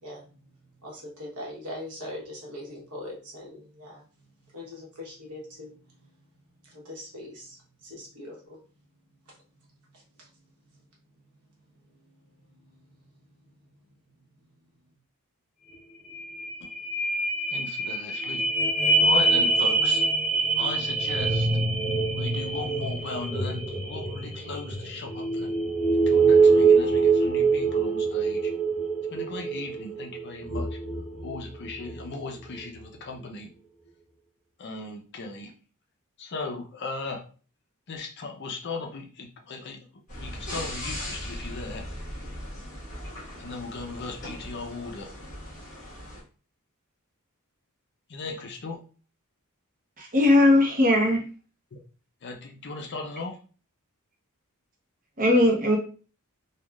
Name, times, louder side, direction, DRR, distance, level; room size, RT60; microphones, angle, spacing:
voice 1, 0.0-0.3 0.8-4.0 4.5-6.1 6.6-8.6 10.2-10.3 12.5-12.9, left 1 dB, 80° right, 1.1 m, -41 dB
sound 1, 15.7-15.8 16.1-32.0 32.5-32.6, right 3 dB, ahead, 0.8 m, -24 dB
voice 2, 17.5-18.4 19.0-20.0 20.6-21.5 22.1-25.5 25.9-28.5 29.1-30.8 31.2-33.5 34.6-35.5 36.2-37.2 37.9-39.8 40.2-41.8 43.4-45.1 48.1-48.8 51.7-51.8 52.2-53.4, left 3 dB, 50° left, 0.5 m, -37 dB
sound 2, 40.1-46.2, left 1 dB, 35° left, 1.3 m, -38 dB
voice 3, 50.0-51.2 55.2-55.8, left 1 dB, 40° right, 0.7 m, -19 dB
3.4 x 2.2 x 2.3 m
head